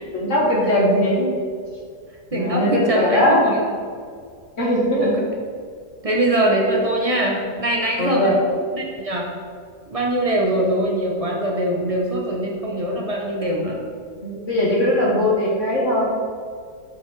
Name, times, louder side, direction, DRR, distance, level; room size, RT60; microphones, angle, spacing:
voice 1, 0.1-1.2 2.3-3.4 4.6-5.2 8.0-8.4 14.2-16.0, left 1 dB, 50° left, -5 dB, 1.4 m, -19 dB
voice 2, 2.3-3.6 4.9-5.1 6.0-8.5 8.7-9.3 9.9-13.8 15.0-15.1, right 1 dB, 45° right, -1 dB, 0.4 m, -22 dB
6.2 x 5.7 x 3.9 m, 2.1 s
omnidirectional pair, 1.8 m